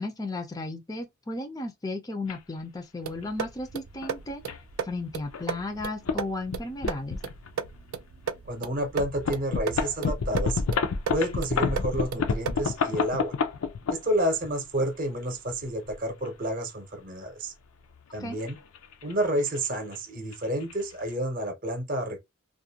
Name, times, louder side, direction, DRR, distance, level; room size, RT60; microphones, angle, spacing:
voice 1, 0.0-4.4 4.8-7.2 18.2-18.4, left 2 dB, 15° left, 0.4 m, -34 dB
sound 1, 2.3-2.4 3.2-3.4 4.0-4.1 4.5-4.6 5.3-5.5 5.8-6.2 6.5-7.8 8.3-8.4 8.9-14.5 15.3-16.3 18.0-19.1 19.4-19.7 19.9-20.0 20.3-20.7, left 5 dB, 90° left, 0.5 m, -29 dB
sound 2, 3.0-12.8, right 7 dB, 80° right, 0.4 m, -36 dB
voice 2, 8.5-10.6 11.1-13.3 13.9-17.5 18.1-18.6 19.0-22.2, right 1 dB, 40° right, 0.7 m, -30 dB
2.4 x 2.1 x 2.7 m
head